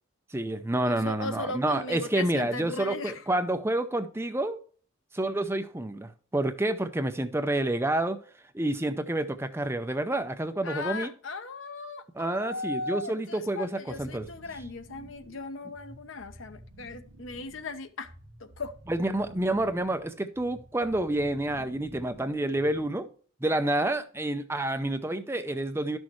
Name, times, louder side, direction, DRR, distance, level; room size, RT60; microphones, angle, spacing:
voice 1, 0.3-4.6 5.1-8.2 8.5-11.1 12.1-14.3 18.9-23.1 23.4-26.0, right 1 dB, 10° right, 0.5 m, -29 dB
voice 2, 0.8-3.2 10.6-18.1 18.4-18.7, left 3 dB, 65° left, 0.9 m, -37 dB
sound 1, 13.9-23.1, equal, 80° right, 1.5 m, -51 dB
11.5 x 6.3 x 3.1 m
head